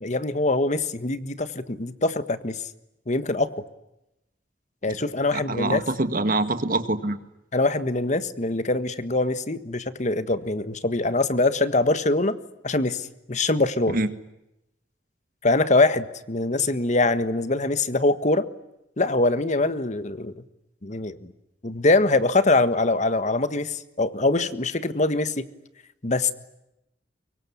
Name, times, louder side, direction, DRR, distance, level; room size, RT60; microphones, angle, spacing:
voice 1, 0.0-2.6 3.1-3.5 4.8-5.8 7.5-12.4 12.6-14.0 15.4-18.5 19.0-20.3 20.8-21.3 21.6-25.4 26.0-26.3, left 2 dB, 40° left, 12 dB, 1.5 m, -23 dB
voice 2, 5.3-7.2 13.9-14.1, right 2 dB, 50° right, 10 dB, 1.8 m, -25 dB
24.5 x 23.5 x 9.8 m, 0.88 s
head